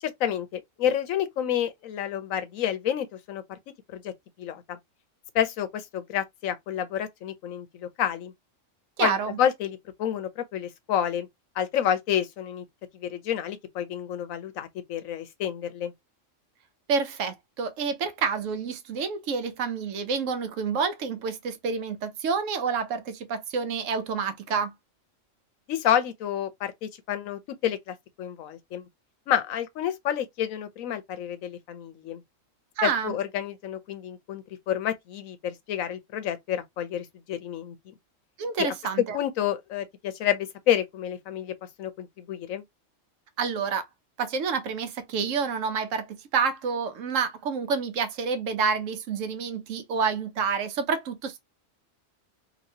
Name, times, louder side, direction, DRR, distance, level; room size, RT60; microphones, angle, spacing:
voice 1, 0.0-3.6 3.9-4.1 4.4-4.8 5.3-8.3 9.0-11.3 11.6-12.6 12.9-15.9 25.7-28.9 29.3-32.2 32.8-37.8 38.6-38.7 39.1-42.6, left 10 dB, 85° left, 1.1 m, -29 dB
voice 2, 9.0-9.4 16.9-24.7 32.8-33.1 38.4-39.2 43.4-43.9 44.2-51.4, right 5 dB, 75° right, 1.0 m, -28 dB
2.9 x 2.8 x 2.7 m
omnidirectional pair, 1.4 m